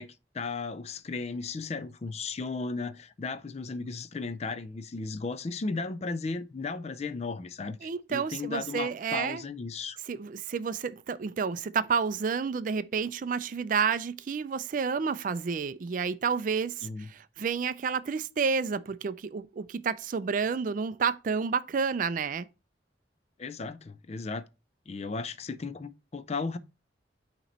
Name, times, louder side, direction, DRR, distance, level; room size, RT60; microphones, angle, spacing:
voice 1, 0.0-10.0 16.8-17.1 23.4-24.4 24.9-26.6, left 4 dB, 35° left, 0.4 m, -35 dB
voice 2, 7.8-9.4 10.1-22.5, right 6 dB, 45° right, 0.3 m, -30 dB
8.9 x 3.0 x 4.0 m
head